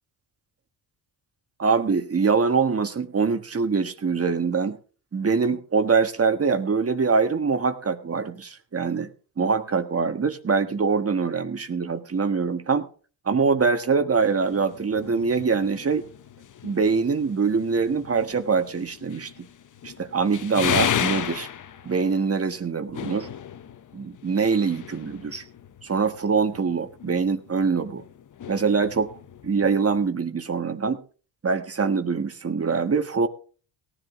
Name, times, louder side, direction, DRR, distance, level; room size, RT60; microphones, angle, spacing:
voice 1, 1.6-4.8 5.1-9.1 9.4-12.9 13.2-16.0 16.6-19.3 19.8-21.5 21.8-23.3 23.9-25.4 25.8-28.0 28.5-29.1 29.4-31.0 31.4-33.3, right 5 dB, 35° right, 8 dB, 1.5 m, -24 dB
sound 1, 14.2-30.1, left 9 dB, 45° left, 0.8 m, -35 dB
18.0 x 11.0 x 3.6 m, 0.38 s
cardioid pair, 80°, 43 cm